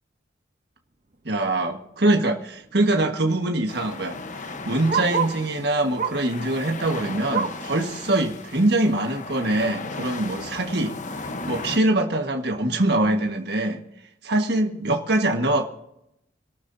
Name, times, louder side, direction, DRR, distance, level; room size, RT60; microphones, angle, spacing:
voice 1, 1.2-11.0 11.5-13.8 14.2-15.6, right 2 dB, 60° right, 4 dB, 1.5 m, -23 dB
Bark, 1.7-2.0 2.3-2.4 2.6-5.5 5.9-6.4 6.7-7.7 8.2-8.3 8.7-8.8 9.5-9.6, right 5 dB, 45° right, 0.9 m, -30 dB
sound 1, 3.7-11.8, left 3 dB, 40° left, 1.0 m, -36 dB
26.5 x 12.5 x 2.7 m, 0.79 s
head